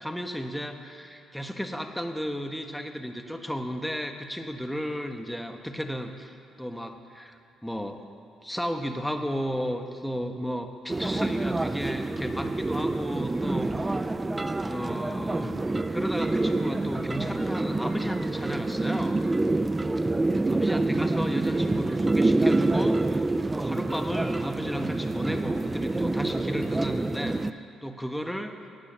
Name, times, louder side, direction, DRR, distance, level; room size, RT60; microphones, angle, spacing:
voice 1, 0.0-6.3 6.6-8.0 8.4-14.1 14.6-15.6 15.9-19.2 20.5-23.2 23.5-28.6, equal, ahead, 5 dB, 1.2 m, -34 dB
sound 1, 10.9-27.5, right 2 dB, 15° right, 0.5 m, -27 dB
18.0 x 9.6 x 6.9 m, 2.4 s
cardioid pair, 95°, 0 cm